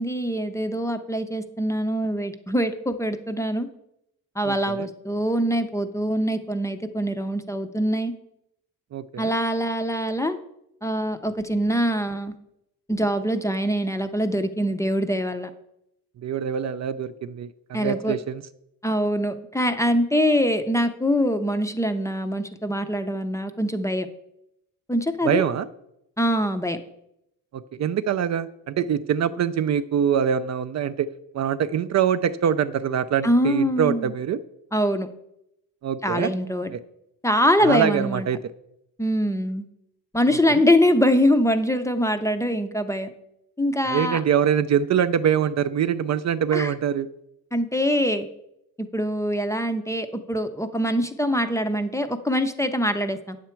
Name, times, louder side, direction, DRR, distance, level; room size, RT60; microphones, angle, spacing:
voice 1, 0.0-3.7 4.4-8.1 9.2-10.4 10.8-12.3 12.9-15.5 17.7-18.2 18.8-24.1 24.9-25.4 26.2-26.8 33.2-34.1 34.7-35.1 36.0-36.7 37.2-38.3 39.0-39.6 40.1-43.1 43.6-44.2 46.5-46.7 47.5-48.3 48.8-53.4, equal, 10° left, 8 dB, 0.5 m, -23 dB
voice 2, 4.4-4.9 8.9-9.3 16.2-18.4 25.3-25.7 27.5-31.1 31.3-34.4 35.8-36.3 36.7-36.8 37.6-38.4 40.5-40.6 43.9-47.1, right 8 dB, 50° right, 12 dB, 0.4 m, -24 dB
9.2 x 7.1 x 4.4 m, 0.80 s
cardioid pair, 120°, 37 cm